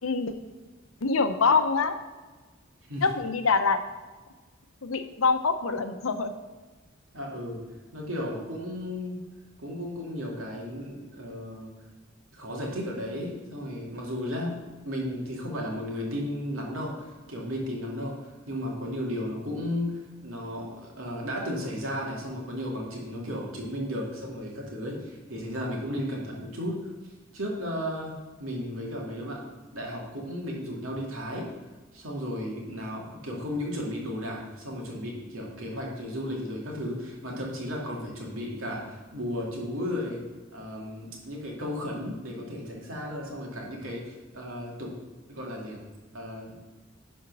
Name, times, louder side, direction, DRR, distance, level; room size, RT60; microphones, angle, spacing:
voice 1, 0.0-0.3 1.0-1.9 3.0-3.8 4.8-6.3, left 4 dB, 90° left, 9 dB, 0.8 m, -24 dB
voice 2, 7.1-7.7 7.9-9.2 9.6-11.7 12.3-14.6 14.8-26.9 27.3-29.5 29.7-31.5 31.9-40.2 40.5-45.0 45.3-45.8 46.1-46.6, equal, 85° right, -1 dB, 2.3 m, -34 dB
11.0 x 4.4 x 6.1 m, 1.3 s
head